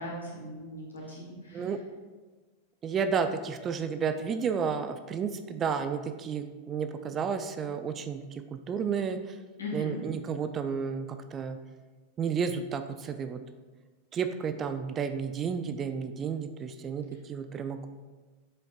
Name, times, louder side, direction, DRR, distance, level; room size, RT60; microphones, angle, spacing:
voice 1, 0.0-1.6 9.6-10.0, left 1 dB, 75° left, -4 dB, 1.9 m, -38 dB
voice 2, 2.8-9.4 9.7-11.6 12.2-13.4 14.1-17.9, right 6 dB, 25° right, 9 dB, 0.4 m, -32 dB
7.6 x 5.1 x 2.4 m, 1.3 s
figure-of-eight pair, 90°, 0 cm